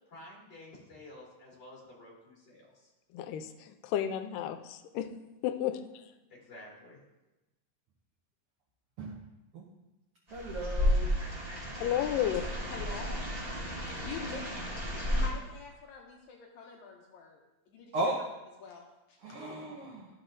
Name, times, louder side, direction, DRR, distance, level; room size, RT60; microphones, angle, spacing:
voice 1, 0.1-2.9 6.3-7.0, left 1 dB, 35° left, -5 dB, 2.5 m, -51 dB
voice 2, 3.1-5.1 5.4-5.8 11.8-12.4, left 11 dB, 90° left, 9 dB, 2.2 m, -32 dB
sound 1, 10.3-15.3, left 1 dB, 25° right, 0.8 m, -32 dB
voice 3, 10.3-11.1 17.9-18.2 19.2-20.1, right 2 dB, 75° right, -2 dB, 1.3 m, -35 dB
voice 4, 12.7-13.4 14.0-14.4 15.1-17.4 17.7-18.1 18.6-19.6, left 5 dB, 75° left, 1 dB, 1.9 m, -45 dB
12.5 x 6.3 x 2.6 m, 1.0 s
omnidirectional pair, 3.7 m